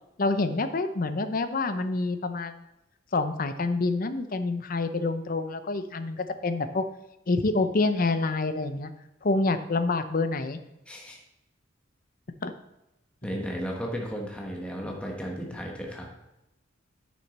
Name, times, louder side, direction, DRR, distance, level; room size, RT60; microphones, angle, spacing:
voice 1, 0.2-2.6 3.1-6.8 7.3-8.9 9.2-10.6 12.4-12.5, left 3 dB, 50° left, 10 dB, 0.7 m, -27 dB
voice 2, 10.9-11.2 13.2-16.1, equal, 5° left, -1 dB, 1.2 m, -34 dB
9.4 x 6.3 x 4.2 m, 0.91 s
head